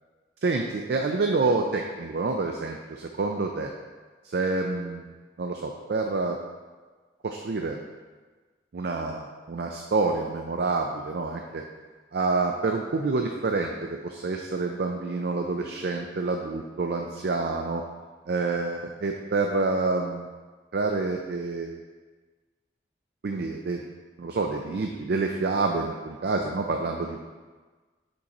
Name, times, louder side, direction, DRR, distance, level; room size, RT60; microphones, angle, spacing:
voice 1, 0.4-3.7 4.2-5.1 5.4-6.4 7.2-7.8 8.7-11.6 12.1-17.8 18.3-20.3 20.7-21.8 23.2-23.8 24.2-27.2, right 3 dB, 60° right, 2 dB, 0.4 m, -28 dB
5.3 x 5.1 x 4.1 m, 1.4 s
head